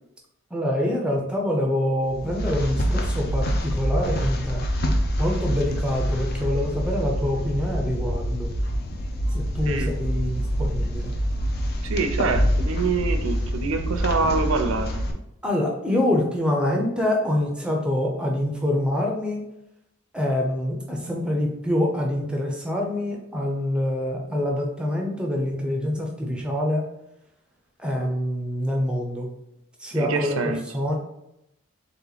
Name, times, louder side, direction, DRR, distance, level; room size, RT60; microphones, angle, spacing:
voice 1, 0.5-4.6 5.2-8.5 9.5-11.1 15.4-19.4 20.1-26.9 27.8-29.3 29.8-30.4 30.7-30.9, left 1 dB, 5° right, 0 dB, 0.5 m, -25 dB
sound 1, 2.0-15.1, equal, 45° left, 0.5 m, -26 dB
voice 2, 9.6-9.9 11.8-15.0 29.9-30.8, right 4 dB, 70° right, 7 dB, 0.5 m, -26 dB
3.5 x 2.9 x 3.9 m, 0.82 s
head